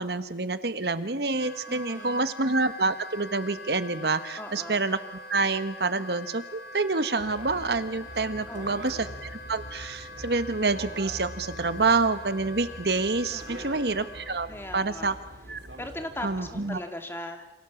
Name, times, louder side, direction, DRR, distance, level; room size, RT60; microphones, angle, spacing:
voice 1, 0.0-5.0 5.3-14.5 14.7-15.1 15.5-15.6 16.2-16.8, right 3 dB, 70° right, 11 dB, 1.4 m, -27 dB
Wind instrument woodwind instrument, 1.3-14.5, left 2 dB, 70° left, 3.8 m, -44 dB
voice 2, 1.7-2.3 4.4-4.8 8.5-8.9 13.3-14.0 14.5-15.2 15.8-17.5, left 1 dB, 15° left, 5 dB, 2.5 m, -39 dB
sound 1, 7.2-16.8, right 1 dB, 85° right, 4.7 m, -44 dB
28.5 x 27.0 x 7.2 m, 0.91 s
head